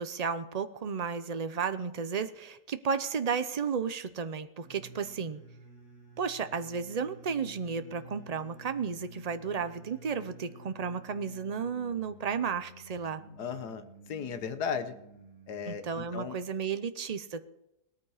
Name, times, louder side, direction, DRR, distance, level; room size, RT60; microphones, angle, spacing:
voice 1, 0.0-5.4 6.2-13.2 15.7-17.4, right 6 dB, 70° right, 11 dB, 0.3 m, -33 dB
sound 1, 4.6-16.5, right 2 dB, 60° left, 7.1 m, -52 dB
voice 2, 13.4-14.9 15.5-16.4, left 6 dB, 80° left, 9 dB, 1.7 m, -36 dB
18.5 x 13.5 x 4.9 m, 0.86 s
omnidirectional pair, 1.7 m